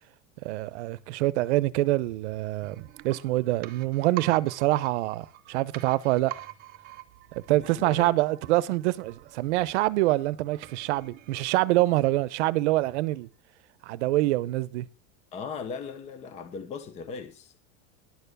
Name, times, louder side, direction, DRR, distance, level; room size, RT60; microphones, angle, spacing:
voice 1, 0.4-6.3 7.3-13.3 13.8-14.9, right 17 dB, 65° right, 0.9 m, -25 dB
sound 1, 2.6-12.3 12.6-12.7, right 16 dB, 25° right, 0.7 m, -46 dB
voice 2, 7.8-8.1 15.3-17.6, left 5 dB, 20° left, 0.9 m, -38 dB
11.0 x 7.0 x 6.6 m
supercardioid pair, 180°, 37 cm